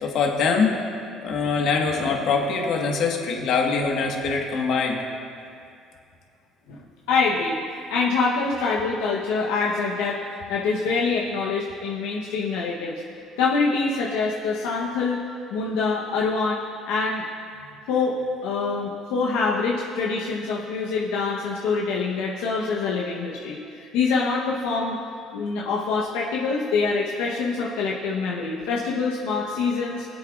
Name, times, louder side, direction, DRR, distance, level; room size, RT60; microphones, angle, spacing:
voice 1, 0.0-0.7 1.2-5.0, left 5 dB, 65° left, 1 dB, 1.4 m, -23 dB
voice 2, 7.1-10.2 10.5-13.0 13.4-15.2 15.5-17.2 17.9-25.0 25.3-30.1, left 4 dB, 85° left, -4 dB, 0.9 m, -25 dB
22.0 x 7.9 x 2.4 m, 2.4 s
supercardioid pair, 85°, 0 cm